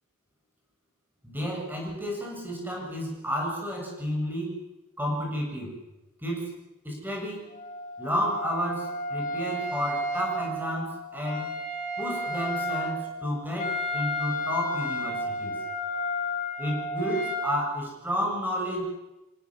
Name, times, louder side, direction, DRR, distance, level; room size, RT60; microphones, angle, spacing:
voice 1, 1.2-4.6 5.0-5.7 6.2-6.5 6.8-7.5 8.0-11.6 12.0-15.6 16.6-18.8, equal, 10° right, -1 dB, 7.2 m, -31 dB
Wind instrument woodwind instrument, 7.5-17.5, left 1 dB, 35° left, 3.0 m, -32 dB
25.5 x 17.5 x 7.5 m, 1.0 s
head